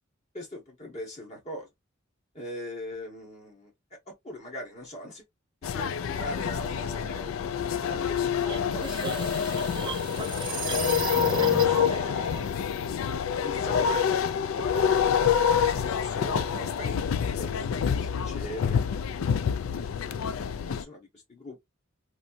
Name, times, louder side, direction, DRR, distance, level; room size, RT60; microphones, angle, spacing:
voice 1, 0.3-1.7 2.3-3.7 4.1-5.2 5.7-9.9 10.5-10.6 11.1-13.1 13.4-19.2 20.7-21.6, left 1 dB, 35° left, 1.2 m, -41 dB
sound 1, 5.6-20.8, left 7 dB, 85° left, 0.3 m, -27 dB
sound 2, 8.5-12.0, right 4 dB, 25° right, 0.6 m, -34 dB
3.2 x 2.7 x 2.6 m
head